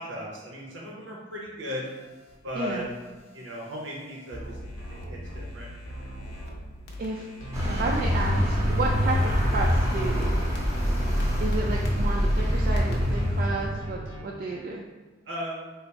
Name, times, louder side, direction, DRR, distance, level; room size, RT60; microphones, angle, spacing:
voice 1, 0.0-1.8 2.4-2.8 3.3-4.6 4.9-5.7 15.3-15.7, equal, 90° right, -3 dB, 0.7 m, -36 dB
sound 1, 1.8-6.5 6.9-13.5, left 1 dB, 60° left, 0.6 m, -46 dB
voice 2, 2.5-2.9 7.0-7.3 7.7-10.4 11.4-14.8, right 3 dB, 50° right, -1 dB, 0.3 m, -31 dB
sound 2, 4.3-7.1 7.4-12.1 12.4-14.2, right 1 dB, 90° left, 0.9 m, -40 dB
Vehicle, 7.5-13.9, equal, 15° right, 0.6 m, -25 dB
3.3 x 2.0 x 4.0 m, 1.3 s
head